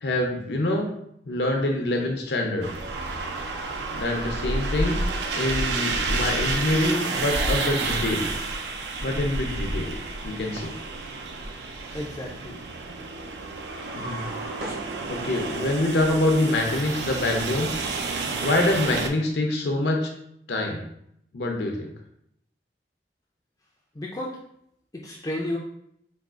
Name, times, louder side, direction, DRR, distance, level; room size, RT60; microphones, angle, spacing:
voice 1, 0.0-0.9 1.3-2.7 3.9-8.3 9.0-9.9 10.2-10.7 14.0-14.2 15.1-17.7 18.4-20.1 20.5-20.8 21.3-21.9, left 1 dB, 75° left, 2 dB, 0.6 m, -25 dB
sound 1, 2.6-19.1, right 3 dB, 75° right, 0.4 m, -30 dB
voice 2, 11.9-12.6 23.9-24.4 24.9-25.6, left 1 dB, 20° left, -2 dB, 0.3 m, -32 dB
sound 2, 13.5-15.6, right 1 dB, 55° right, 0.7 m, -38 dB
4.7 x 2.3 x 2.4 m, 0.73 s
head